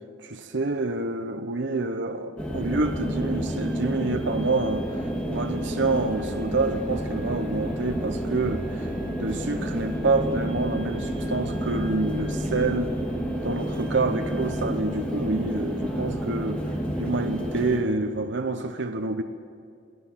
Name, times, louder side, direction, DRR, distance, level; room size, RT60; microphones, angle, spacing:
voice 1, 0.2-4.9 5.3-8.9 9.2-13.0 13.4-16.6 17.0-19.2, right 3 dB, 70° right, 6 dB, 1.0 m, -27 dB
sound 1, 2.4-17.8, equal, 5° left, 2.6 m, -30 dB
23.0 x 16.0 x 7.4 m, 2.3 s
head